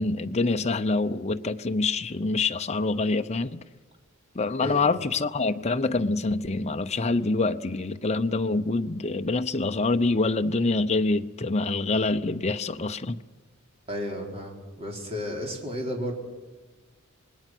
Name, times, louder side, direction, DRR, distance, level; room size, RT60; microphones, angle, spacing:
voice 1, 0.0-3.6 4.3-13.2, left 3 dB, 30° left, 0.7 m, -26 dB
voice 2, 13.9-16.1, left 1 dB, 30° right, 4.2 m, -33 dB
27.0 x 20.5 x 6.1 m
head